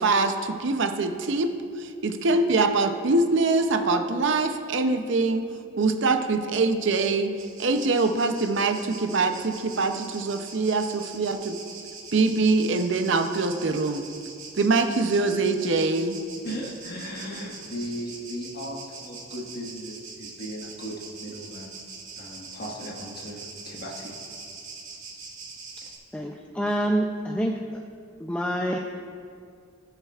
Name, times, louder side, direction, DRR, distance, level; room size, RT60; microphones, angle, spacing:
voice 1, 0.0-1.5 1.8-5.4 5.8-7.3 7.6-11.6 12.1-14.0 14.6-16.2, right 3 dB, 60° right, 7 dB, 0.6 m, -24 dB
sound 1, 7.4-26.0, right 4 dB, 80° right, 2.0 m, -43 dB
voice 2, 16.4-21.8 22.2-24.1 25.8-25.9, equal, 45° left, -2 dB, 1.4 m, -37 dB
voice 3, 26.1-27.8 28.2-28.8, equal, 5° left, 1 dB, 0.3 m, -27 dB
19.0 x 6.6 x 2.4 m, 2.3 s
head